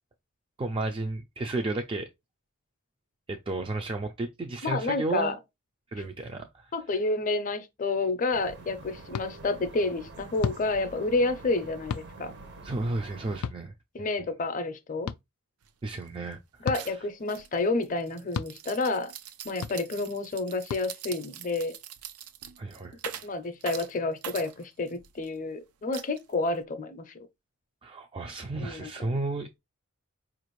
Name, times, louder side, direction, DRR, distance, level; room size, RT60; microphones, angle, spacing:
voice 1, 0.6-2.1 3.3-5.4 5.9-6.7 12.6-13.7 15.8-17.1 22.6-23.0 27.8-29.6, right 2 dB, 25° right, 0.3 m, -33 dB
voice 2, 4.6-5.3 6.7-12.3 13.9-15.1 16.6-19.1 19.4-21.8 23.2-27.3 28.6-29.1, left 3 dB, 35° left, 0.5 m, -30 dB
sound 1, 8.3-13.4, right 2 dB, 55° right, 0.7 m, -46 dB
sound 2, 9.1-9.3 10.4-10.6 11.9-12.1 13.4-13.6 15.1-15.2 16.6-16.8 18.3-18.5 19.6-19.8 20.7-20.8, left 7 dB, 85° left, 0.3 m, -31 dB
sound 3, 15.6-15.7 16.0-16.3 16.7-25.3 25.9-26.6, right 10 dB, 85° right, 0.5 m, -43 dB
4.8 x 2.5 x 3.0 m
head